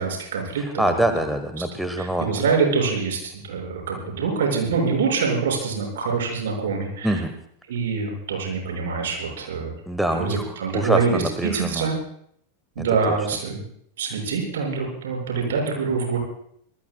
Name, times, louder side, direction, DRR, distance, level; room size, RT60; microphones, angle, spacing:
voice 1, 0.0-0.6 2.0-7.2 7.7-9.7 10.1-12.0 12.8-13.6 14.0-16.2, right 5 dB, 60° right, 1 dB, 6.0 m, -25 dB
voice 2, 0.6-2.4 7.0-7.3 9.9-11.9 12.8-13.1, right 1 dB, ahead, 7 dB, 1.2 m, -25 dB
26.0 x 19.5 x 2.3 m, 0.68 s
figure-of-eight pair, 90°, 0 cm